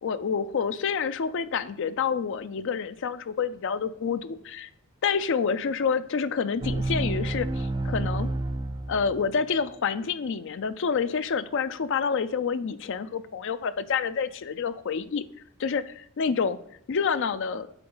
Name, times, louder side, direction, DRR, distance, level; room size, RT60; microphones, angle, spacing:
voice 1, 0.0-4.7 5.0-8.3 8.9-15.2 15.6-16.6 16.9-17.7, left 6 dB, 60° left, 13 dB, 0.4 m, -28 dB
sound 1, 6.6-9.4, right 2 dB, 20° right, 0.3 m, -29 dB
8.1 x 3.8 x 3.9 m, 0.73 s
head